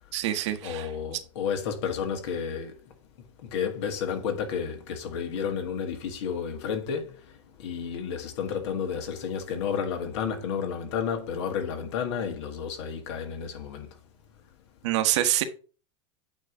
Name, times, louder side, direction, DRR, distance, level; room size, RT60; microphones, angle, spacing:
voice 1, 0.1-0.9 14.8-15.4, right 13 dB, 65° right, 1.2 m, -26 dB
voice 2, 0.6-2.8 3.4-13.9, left 7 dB, 65° left, 1.9 m, -31 dB
9.0 x 3.2 x 5.5 m
supercardioid pair, 135°, 16 cm